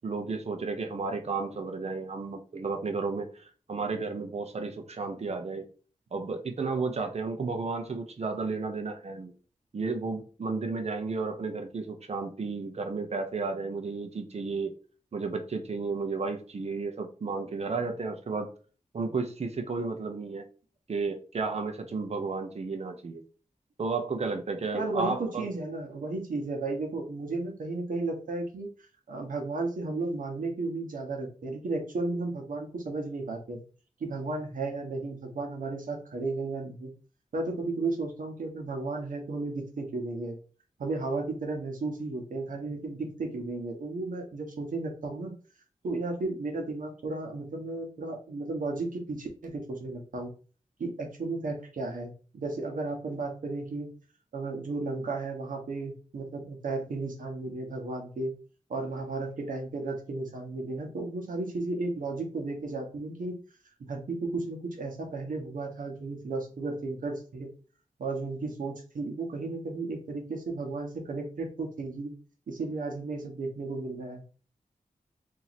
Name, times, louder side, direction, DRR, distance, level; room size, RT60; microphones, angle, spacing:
voice 1, 0.0-5.7 6.1-9.3 9.7-14.8 15.1-18.5 18.9-20.5 20.9-23.2 23.8-25.5, right 4 dB, 55° right, 5 dB, 0.8 m, -33 dB
voice 2, 24.7-28.7 29.1-33.6 34.0-36.9 37.3-40.4 40.8-45.3 45.8-50.3 50.8-53.9 54.3-58.3 58.7-63.4 63.9-67.5 68.0-72.1 72.5-74.2, right 3 dB, 90° right, 3 dB, 1.0 m, -34 dB
2.9 x 2.8 x 4.1 m, 0.38 s
wide cardioid pair, 80°, 13 cm